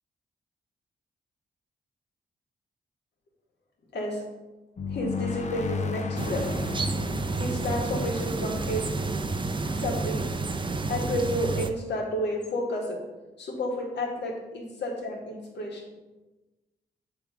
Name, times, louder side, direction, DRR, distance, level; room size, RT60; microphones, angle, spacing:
voice 1, 3.9-4.2 4.9-6.5 7.4-8.8 9.7-10.3 10.9-13.0 13.4-16.0, left 1 dB, 75° left, -2 dB, 1.8 m, -31 dB
sound 1, 4.8-9.4, left 5 dB, 40° left, 0.7 m, -34 dB
sound 2, 6.2-11.7, right 3 dB, 25° right, 0.6 m, -30 dB
7.7 x 3.6 x 5.0 m, 1.1 s
cardioid pair, 60°, 18 cm